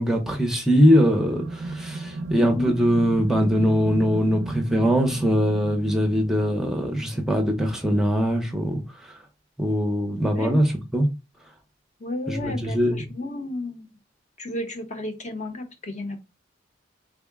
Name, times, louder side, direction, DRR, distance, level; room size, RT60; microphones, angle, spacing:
voice 1, 0.0-9.1 9.6-11.1 12.3-13.1, equal, 5° right, 0.6 m, -22 dB
sound 1, 1.2-6.8, right 3 dB, 75° right, 0.4 m, -34 dB
voice 2, 2.4-2.8 10.3-10.6 12.0-13.9 14.4-16.4, left 2 dB, 40° left, 0.7 m, -32 dB
3.7 x 2.1 x 3.5 m
head